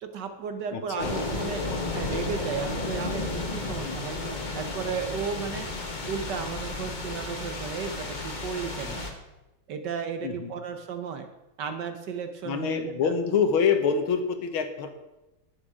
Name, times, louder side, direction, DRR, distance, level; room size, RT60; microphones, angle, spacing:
voice 1, 0.0-1.6 1.9-4.2 4.5-5.7 6.1-9.1 9.7-11.3 11.6-13.2, right 6 dB, 60° right, 7 dB, 1.3 m, -34 dB
voice 2, 0.7-1.1 3.8-4.0 10.2-10.5 12.4-14.9, left 6 dB, 75° left, 8 dB, 1.8 m, -26 dB
sound 1, 1.0-9.1, left 2 dB, 30° left, 1.0 m, -33 dB
11.0 x 8.5 x 4.9 m, 0.97 s
omnidirectional pair, 2.3 m